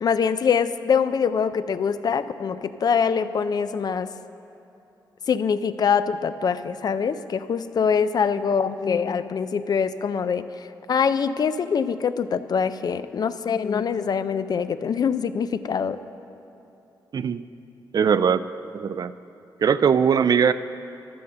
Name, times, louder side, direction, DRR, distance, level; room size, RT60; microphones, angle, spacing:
voice 1, 0.0-4.1 5.3-10.5 10.9-16.0, left 6 dB, 55° left, 12 dB, 0.4 m, -24 dB
voice 2, 17.9-18.4 18.7-19.1 19.6-20.5, right 7 dB, 55° right, 13 dB, 0.4 m, -20 dB
12.5 x 6.8 x 6.7 m, 2.9 s
cardioid pair, 85°, 8 cm